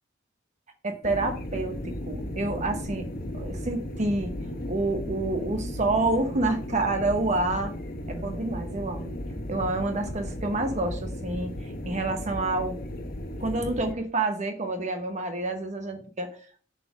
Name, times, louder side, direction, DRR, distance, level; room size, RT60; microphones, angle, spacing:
voice 1, 0.8-4.3 4.7-7.7 8.1-9.1 9.5-12.8 13.4-16.3, right 2 dB, 40° right, 6 dB, 0.9 m, -28 dB
sound 1, 1.0-13.9, equal, 50° left, 0.9 m, -35 dB
7.4 x 4.3 x 5.8 m, 0.42 s
head